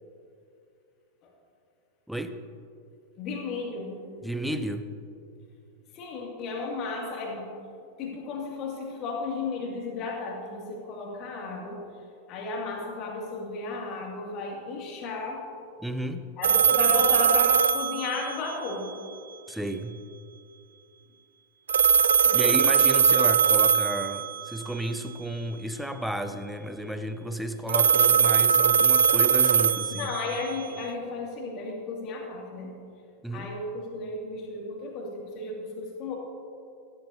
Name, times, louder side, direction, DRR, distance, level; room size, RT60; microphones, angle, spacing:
voice 1, 3.2-4.0 5.9-7.5 8.0-11.8 12.3-15.4 16.4-18.9 22.2-22.5 30.0-32.8 33.3-36.1, left 3 dB, 40° left, -1 dB, 2.4 m, -34 dB
voice 2, 4.2-4.9 15.8-16.3 19.5-20.0 22.3-30.1 33.2-33.5, right 1 dB, ahead, 9 dB, 0.6 m, -32 dB
sound 1, 16.4-18.7 21.7-24.6 27.7-30.6, right 7 dB, 65° right, 0.3 m, -21 dB
14.0 x 13.0 x 2.8 m, 2.5 s
figure-of-eight pair, 90°, 0 cm